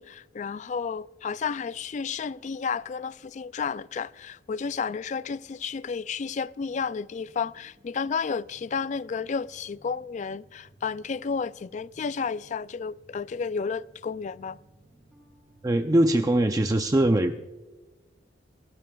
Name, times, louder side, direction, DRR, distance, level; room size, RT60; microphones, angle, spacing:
voice 1, 0.0-14.6, left 5 dB, 40° left, 0.3 m, -32 dB
sound 1, 6.6-16.0, right 1 dB, 5° right, 3.5 m, -59 dB
voice 2, 15.6-17.4, right 1 dB, 20° right, 0.5 m, -22 dB
26.0 x 14.0 x 2.3 m
head